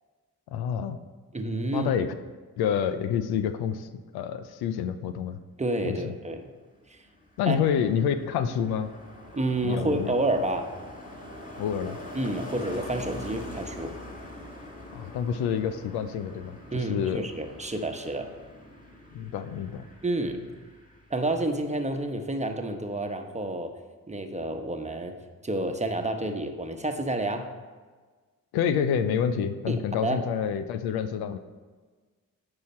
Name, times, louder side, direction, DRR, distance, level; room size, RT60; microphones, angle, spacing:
voice 1, 0.5-1.0 1.7-2.1 2.6-5.4 5.9-6.1 7.4-8.9 9.6-10.1 11.6-12.0 14.9-16.6 16.9-17.2 19.1-19.9 28.5-31.4, left 8 dB, 90° left, 11 dB, 0.5 m, -28 dB
voice 2, 1.3-1.9 5.6-6.5 6.9-7.0 7.5-7.6 9.3-10.7 12.1-13.9 16.7-18.3 20.0-20.5 21.1-23.7 24.1-25.1 25.4-27.5 29.7-30.2, right 1 dB, 20° right, 5 dB, 1.0 m, -29 dB
Car passing by, 6.8-21.6 21.9-22.2, left 1 dB, 20° left, 2.1 m, -44 dB
9.5 x 4.9 x 4.3 m, 1.4 s
supercardioid pair, 50°, 37 cm